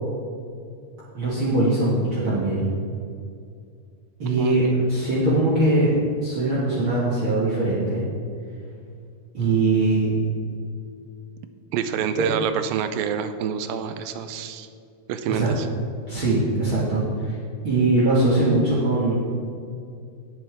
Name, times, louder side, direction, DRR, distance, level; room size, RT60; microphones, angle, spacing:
voice 1, 1.1-2.7 4.2-5.9 6.2-8.0 9.3-10.1 12.2-12.3 15.3-15.5 16.1-17.4 17.6-19.2, right 2 dB, 45° right, -8 dB, 2.3 m, -21 dB
voice 2, 4.4-4.8 11.7-14.7 15.1-15.7, right 8 dB, 90° right, 10 dB, 2.4 m, -27 dB
17.0 x 7.7 x 3.6 m, 2.4 s
omnidirectional pair, 4.1 m